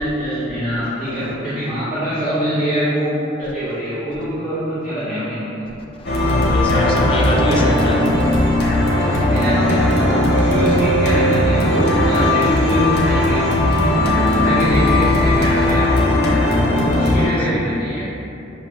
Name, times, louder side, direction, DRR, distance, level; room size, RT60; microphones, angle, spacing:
voice 1, 0.0-5.7 6.6-7.7 8.5-13.4 14.0-15.9 16.7-18.1, equal, 10° right, 1.4 m, -24 dB
sound 1, 6.0-17.3, left 1 dB, 60° left, 0.8 m, -17 dB
voice 2, 6.0-8.6 16.4-16.8, left 1 dB, 25° left, 0.4 m, -25 dB
6.8 x 2.4 x 3.1 m
head